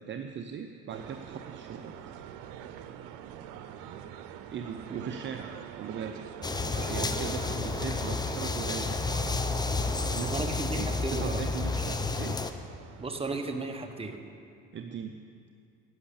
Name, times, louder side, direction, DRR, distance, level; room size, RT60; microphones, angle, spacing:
voice 1, 0.0-1.9 4.5-5.5 5.8-6.2 6.6-9.0 10.2-10.4 10.7-12.4 14.7-15.2, right 7 dB, 40° right, 6 dB, 0.6 m, -39 dB
sound 1, 0.9-14.2, right 9 dB, 85° right, 0.7 m, -44 dB
sound 2, 6.4-12.5, left 3 dB, 15° left, 0.6 m, -31 dB
voice 2, 10.2-11.5 13.0-14.2, right 3 dB, 20° right, 5 dB, 1.1 m, -35 dB
11.0 x 6.5 x 8.5 m, 2.4 s
supercardioid pair, 90°, 29 cm